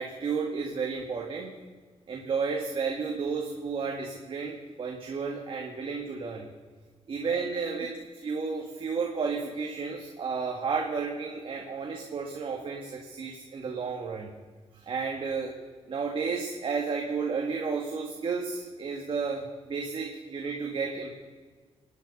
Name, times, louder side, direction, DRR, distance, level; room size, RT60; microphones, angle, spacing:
voice 1, 0.0-1.5 2.1-6.5 7.1-7.9 8.2-14.3 14.7-15.5 15.9-21.1, right 5 dB, 50° right, 0 dB, 2.0 m, -32 dB
26.5 x 9.9 x 5.5 m, 1.5 s
wide cardioid pair, 135°, 12 cm